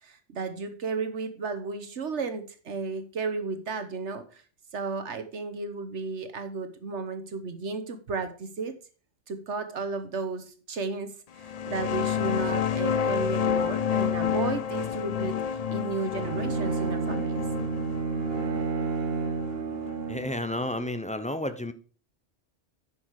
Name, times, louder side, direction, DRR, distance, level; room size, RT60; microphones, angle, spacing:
voice 1, 0.0-4.4 4.7-8.7 9.3-17.4, right 4 dB, 75° right, 9 dB, 1.5 m, -33 dB
sound 1, 11.4-20.7, left 8 dB, 60° left, 0.4 m, -30 dB
Bowed string instrument, 16.2-20.4, right 4 dB, 60° right, 1.1 m, -30 dB
voice 2, 20.1-21.7, left 1 dB, 10° left, 10 dB, 0.5 m, -31 dB
9.8 x 6.6 x 4.7 m, 0.38 s
omnidirectional pair, 1.2 m